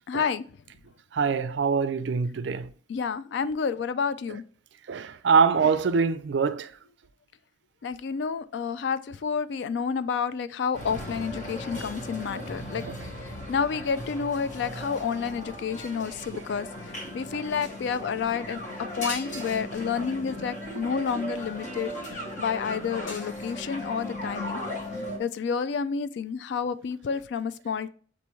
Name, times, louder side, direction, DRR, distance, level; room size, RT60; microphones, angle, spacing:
voice 1, 0.1-0.4 2.9-4.4 7.8-12.8 13.5-16.7 17.1-18.6 18.9-21.9 22.4-24.6 25.2-27.9, left 6 dB, 65° left, 0.3 m, -29 dB
voice 2, 1.1-2.7 4.9-6.7 11.8-11.9, right 5 dB, 70° right, 0.4 m, -24 dB
sound 1, 10.7-25.2, left 1 dB, 40° left, 1.0 m, -37 dB
6.8 x 2.6 x 3.0 m
head